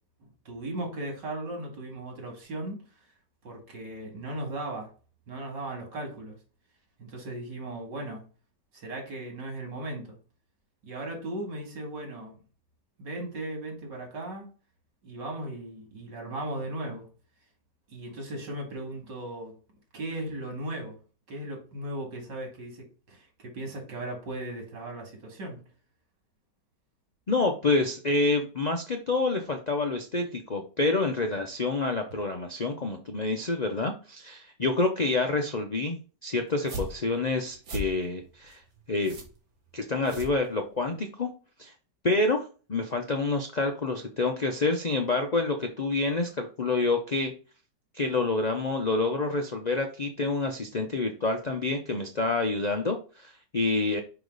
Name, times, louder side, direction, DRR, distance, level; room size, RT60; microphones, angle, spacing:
voice 1, 0.4-2.8 3.4-4.9 5.3-6.4 7.0-8.2 8.7-10.1 10.8-12.4 13.0-14.5 15.0-17.1 17.9-19.5 19.9-21.0 21.3-25.6, right 1 dB, 90° right, 1 dB, 2.9 m, -37 dB
voice 2, 27.3-38.6 38.9-39.2 39.7-41.3 41.6-41.7 42.0-47.3 47.9-54.0, left 3 dB, 70° left, 4 dB, 0.4 m, -28 dB
sound 1, 36.5-41.0, right 1 dB, 55° right, 1.9 m, -40 dB
5.7 x 5.0 x 3.9 m, 0.36 s
omnidirectional pair, 1.8 m